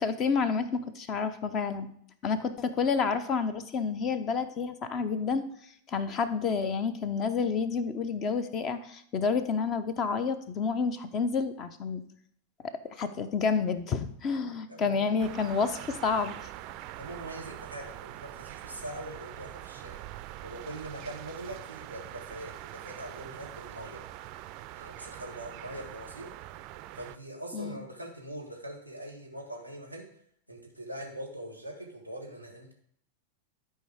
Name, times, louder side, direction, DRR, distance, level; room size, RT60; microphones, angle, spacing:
voice 1, 0.0-1.9 2.2-5.5 5.9-12.0 12.6-16.5 27.5-27.8, left 5 dB, 30° left, 12 dB, 0.8 m, -29 dB
voice 2, 14.7-15.1 17.0-20.0 20.4-22.5 22.8-24.0 24.8-26.3 26.9-30.1 30.5-32.7, right 1 dB, 90° left, 1 dB, 2.0 m, -42 dB
sound 1, 15.2-27.2, right 14 dB, 40° right, 0.4 m, -44 dB
12.5 x 4.6 x 5.0 m, 0.66 s
figure-of-eight pair, 90°, 0 cm